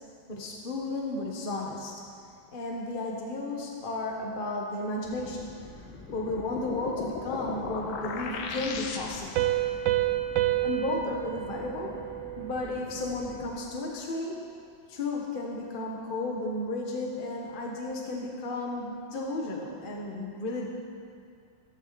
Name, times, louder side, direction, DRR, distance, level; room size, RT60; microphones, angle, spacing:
voice 1, 0.3-1.9 2.5-5.5 6.1-9.5 10.6-11.9 12.4-14.4 14.9-20.7, left 2 dB, 25° left, -2 dB, 1.5 m, -33 dB
sound 1, 5.0-13.6, left 1 dB, ahead, 1.2 m, -48 dB
sound 2, 5.9-9.5, left 5 dB, 75° left, 1.7 m, -37 dB
Piano, 9.4-12.8, right 14 dB, 75° right, 1.3 m, -29 dB
15.0 x 13.0 x 4.2 m, 2.3 s
omnidirectional pair, 2.2 m